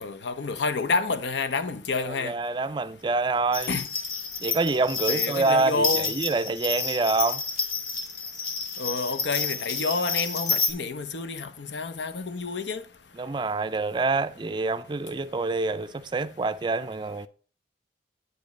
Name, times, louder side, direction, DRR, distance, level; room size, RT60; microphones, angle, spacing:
voice 1, 0.0-2.3 3.7-3.8 5.1-6.1 8.8-12.8, left 4 dB, 85° left, 0.8 m, -29 dB
voice 2, 2.0-3.8 4.4-7.4 13.1-17.3, right 3 dB, 25° right, 0.4 m, -26 dB
sound 1, 3.5-10.7, left 4 dB, 55° left, 1.9 m, -30 dB
9.5 x 5.2 x 5.2 m
head